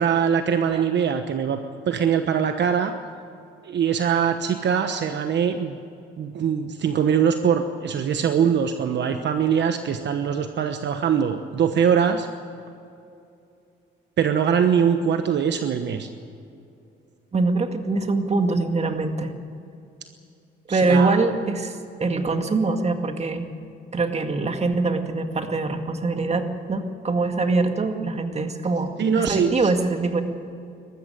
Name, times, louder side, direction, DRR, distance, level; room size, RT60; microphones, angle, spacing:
voice 1, 0.0-1.6 1.9-2.9 3.6-5.8 6.2-12.3 14.2-16.1 20.7-21.2 29.0-29.5, right 7 dB, 60° right, 7 dB, 1.1 m, -22 dB
voice 2, 17.3-19.3 20.7-23.5 23.9-30.2, right 3 dB, 35° right, 6 dB, 2.1 m, -23 dB
20.0 x 14.5 x 9.2 m, 2.5 s
cardioid pair, 90°, 20 cm